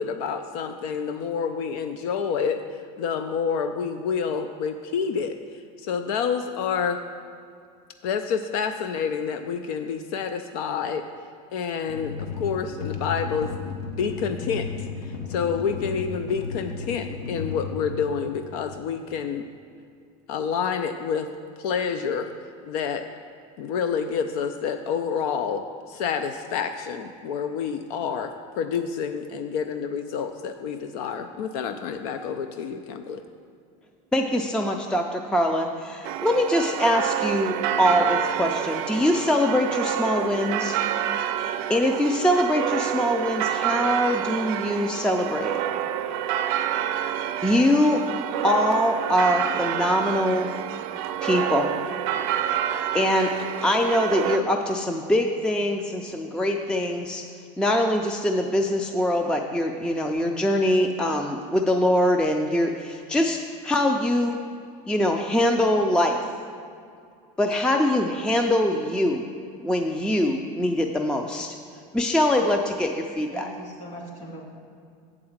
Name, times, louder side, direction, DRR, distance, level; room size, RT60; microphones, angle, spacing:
voice 1, 0.0-7.0 8.0-11.0 11.5-14.7 15.0-19.5 20.3-21.3 21.6-22.3 22.6-23.0 23.6-33.2, left 6 dB, 85° left, 8 dB, 0.5 m, -28 dB
sound 1, 11.9-18.7, left 5 dB, 70° left, 0.9 m, -34 dB
voice 2, 34.1-40.8 41.7-45.6 47.4-48.0 48.4-50.5 51.2-51.7 52.9-53.3 53.6-57.2 57.6-63.4 63.6-64.4 64.9-66.2 67.4-69.2 69.6-71.6 71.9-73.5, left 1 dB, 5° left, 4 dB, 0.3 m, -23 dB
sound 2, 36.0-54.4, right 11 dB, 70° right, 0.5 m, -28 dB
voice 3, 73.3-74.4, equal, 40° left, -1 dB, 2.1 m, -40 dB
7.8 x 4.8 x 7.2 m, 2.4 s
supercardioid pair, 140°, 19 cm